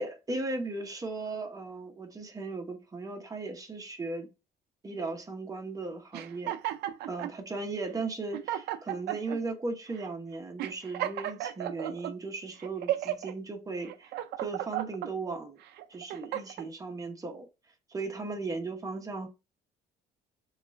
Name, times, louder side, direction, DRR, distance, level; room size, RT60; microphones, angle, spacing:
voice 1, 0.0-4.3 4.8-6.6 7.1-14.1 14.4-15.6 15.9-17.5 17.9-19.3, right 3 dB, 20° right, 0.9 m, -37 dB
sound 1, 6.1-7.3 8.0-8.1 8.3-9.4 10.0-10.1 10.6-12.1 12.6-13.3 13.8-15.1 15.7-16.7, right 12 dB, 75° right, 0.4 m, -34 dB
3.7 x 2.4 x 3.1 m
cardioid pair, 110°, 17 cm